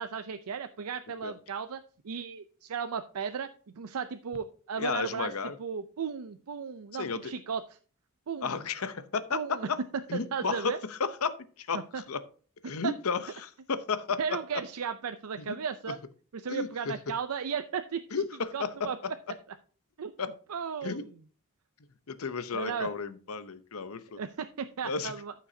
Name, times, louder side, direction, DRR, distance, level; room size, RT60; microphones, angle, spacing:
voice 1, 0.0-5.3 5.6-7.6 8.3-8.6 9.3-9.7 10.1-10.8 11.9-12.0 12.8-12.9 14.2-16.0 16.3-18.2 18.5-19.0 20.0-20.1 20.5-21.1 22.5-22.9 24.2-25.3, right 6 dB, 85° right, 9 dB, 0.5 m, -35 dB
voice 2, 4.8-5.5 6.9-7.3 8.4-9.8 10.1-12.2 12.6-14.2 15.4-15.5 16.5-16.9 18.1-18.7 20.2-20.3 20.8-21.0 22.1-24.2 24.8-25.1, left 5 dB, 75° left, 12 dB, 0.8 m, -33 dB
13.5 x 6.0 x 2.7 m, 0.41 s
head